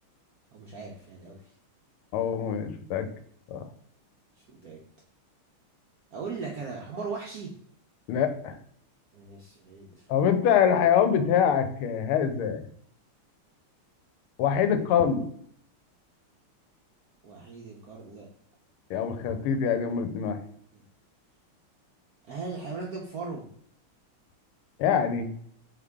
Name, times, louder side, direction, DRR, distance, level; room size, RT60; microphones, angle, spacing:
voice 1, 0.5-1.5 4.5-4.8 6.1-7.5 9.1-10.0 17.2-18.3 20.7-20.8 22.3-23.5, right 4 dB, 70° right, -2 dB, 0.8 m, -38 dB
voice 2, 2.1-3.1 3.5-3.6 8.1-8.6 10.1-12.6 14.4-15.2 18.9-20.4 24.8-25.3, left 8 dB, 85° left, 8 dB, 1.5 m, -24 dB
3.8 x 3.4 x 3.5 m, 0.63 s
omnidirectional pair, 2.4 m